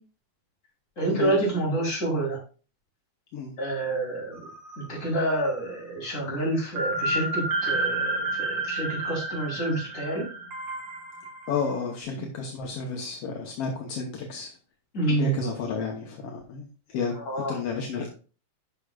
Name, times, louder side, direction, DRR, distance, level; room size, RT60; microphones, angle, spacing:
voice 1, 1.0-2.4 3.6-4.4 4.8-10.2 14.9-15.4 17.1-17.6, right 2 dB, 25° left, -4 dB, 3.1 m, -28 dB
sound 1, 4.3-5.2 5.5-5.6 6.8-11.7, right 2 dB, 50° right, 2.0 m, -30 dB
voice 2, 11.5-14.5 15.1-17.1 17.5-18.1, left 5 dB, 70° left, 2 dB, 1.5 m, -31 dB
9.9 x 6.0 x 2.3 m, 0.36 s
omnidirectional pair, 3.6 m